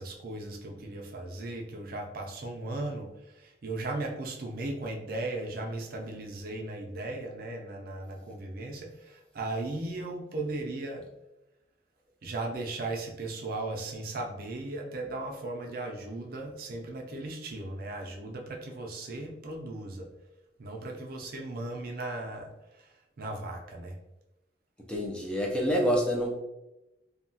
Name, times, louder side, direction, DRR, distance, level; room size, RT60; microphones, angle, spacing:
voice 1, 0.0-11.0 12.2-20.1 20.6-22.5 23.2-24.0, right 2 dB, 55° right, 1 dB, 0.4 m, -37 dB
voice 2, 24.9-26.4, equal, 5° left, -2 dB, 0.4 m, -27 dB
2.8 x 2.2 x 2.7 m, 0.93 s
head